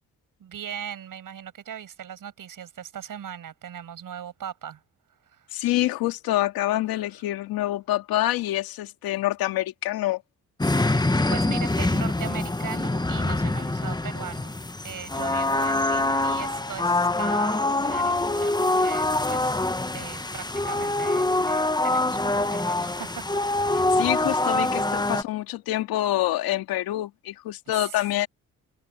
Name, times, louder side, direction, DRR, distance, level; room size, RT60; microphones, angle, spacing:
voice 1, 0.4-4.8 5.2-5.6 6.9-7.0 10.7-14.6 14.8-19.7 19.9-23.4 24.3-24.5 27.8-28.0, right 9 dB, 65° right, 6.6 m, -39 dB
voice 2, 5.5-10.2 23.7-28.3, left 15 dB, 90° left, 2.3 m, -26 dB
sound 1, 10.6-25.2, left 2 dB, 10° left, 1.3 m, -25 dB
supercardioid pair, 65°, 35 cm